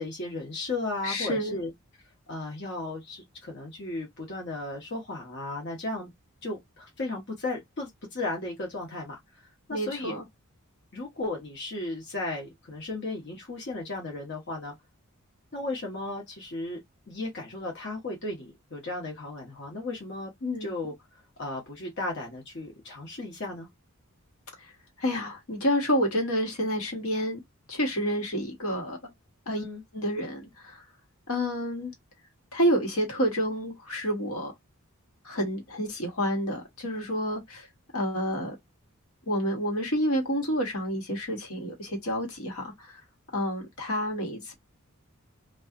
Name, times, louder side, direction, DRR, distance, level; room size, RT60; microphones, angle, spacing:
voice 1, 0.0-1.7 2.3-6.1 6.4-10.2 10.9-14.7 15.5-16.8 17.1-20.3 20.6-20.9 21.4-23.7 29.5-29.8, left 2 dB, 50° left, 0.9 m, -35 dB
voice 2, 1.0-1.6 9.7-10.2 20.4-20.7 25.0-27.4 27.7-29.0 29.5-29.6 29.9-30.8 31.3-31.9 32.5-34.5 35.2-37.7 37.9-38.5 39.3-43.0 43.3-44.5, equal, 75° left, 1.2 m, -29 dB
2.7 x 2.3 x 2.4 m
head